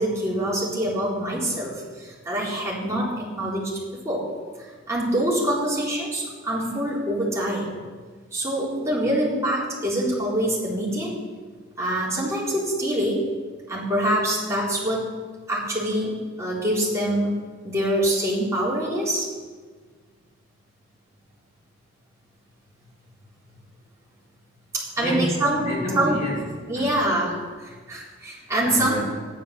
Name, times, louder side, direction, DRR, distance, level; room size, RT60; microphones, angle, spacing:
voice 1, 0.0-3.8 4.0-4.2 4.6-7.8 8.3-11.1 11.8-13.2 13.7-15.1 15.5-17.4 17.6-19.3 24.7-25.7 26.0-26.2 26.7-27.3 27.6-29.0, right 1 dB, 15° right, -6 dB, 3.9 m, -25 dB
voice 2, 25.0-27.2 28.3-29.0, equal, 40° left, -3 dB, 2.6 m, -29 dB
13.5 x 10.5 x 6.6 m, 1.5 s
head